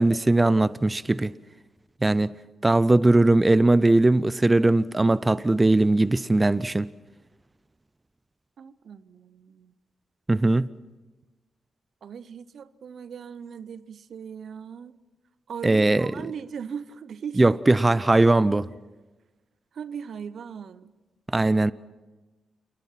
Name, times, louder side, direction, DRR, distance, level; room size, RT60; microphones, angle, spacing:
voice 1, 0.0-1.3 2.0-2.3 2.6-6.9 10.3-10.7 15.6-16.1 17.4-18.7 21.3-21.7, right 2 dB, 25° right, 0.6 m, -20 dB
voice 2, 8.6-9.7 12.0-15.0 15.5-17.8 19.7-20.9, right 7 dB, 65° right, 0.8 m, -39 dB
29.0 x 19.5 x 5.9 m
hypercardioid pair, 40°, 0 cm